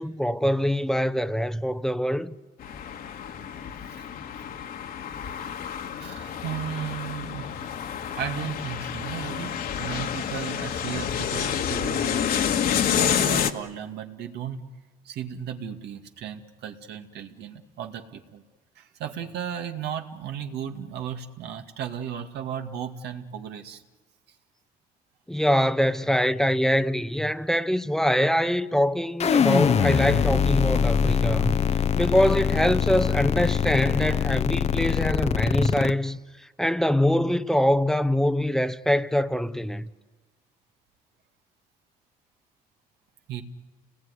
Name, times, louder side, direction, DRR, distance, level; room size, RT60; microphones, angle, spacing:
voice 1, 0.0-2.3 25.3-31.6 31.9-36.2 36.6-39.9, equal, 5° left, 0.8 m, -24 dB
sound 1, 2.6-13.5, left 8 dB, 60° left, 1.7 m, -29 dB
voice 2, 6.0-7.5 8.1-14.7 15.0-18.4 18.8-23.8 43.3-43.4, right 8 dB, 80° right, 2.1 m, -35 dB
sound 2, 29.2-35.9, left 7 dB, 40° left, 0.8 m, -23 dB
30.0 x 20.0 x 9.9 m
cardioid pair, 110°, 17 cm